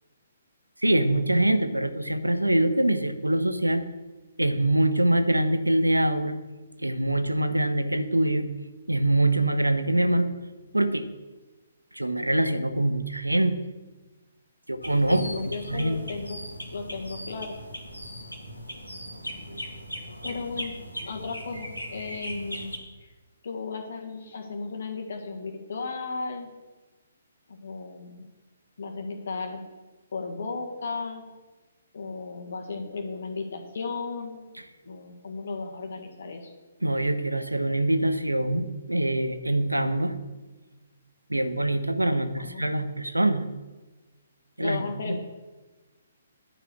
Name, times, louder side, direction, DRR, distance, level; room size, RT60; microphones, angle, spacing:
voice 1, 0.8-3.8 4.4-6.4 6.8-8.5 8.9-10.3 10.7-11.1 11.9-13.5 14.7-16.0 36.8-40.2 41.3-43.4 44.6-45.2, right 1 dB, 85° right, 10 dB, 0.9 m, -24 dB
sound 1, 14.8-22.8, equal, 85° left, 1.6 m, -39 dB
voice 2, 15.1-16.4 16.7-17.6 20.2-20.7 21.0-22.7 23.0-23.1 23.4-26.5 27.5-28.3 28.8-29.6 30.1-31.2 31.9-34.4 34.8-36.5 42.1-42.6 44.6-45.2, left 4 dB, 55° left, 4 dB, 1.7 m, -35 dB
11.0 x 5.0 x 8.0 m, 1.2 s
figure-of-eight pair, 130°, 0 cm